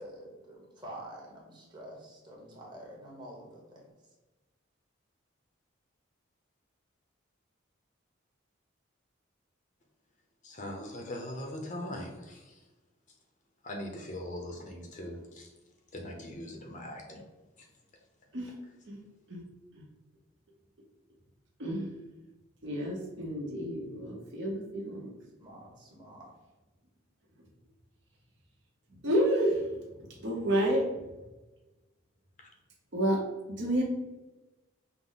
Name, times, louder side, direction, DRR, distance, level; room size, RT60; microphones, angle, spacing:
voice 1, 0.0-3.6 25.4-26.3, right 1 dB, 20° right, -3 dB, 1.1 m, -47 dB
voice 2, 10.4-12.4 13.6-15.5 15.9-17.2, left 1 dB, 35° left, 1 dB, 0.6 m, -40 dB
voice 3, 21.6-21.9 22.6-25.1 28.9-31.0 32.9-33.2 33.5-33.8, equal, 60° right, -2 dB, 1.0 m, -30 dB
5.7 x 2.1 x 3.8 m, 1.1 s
head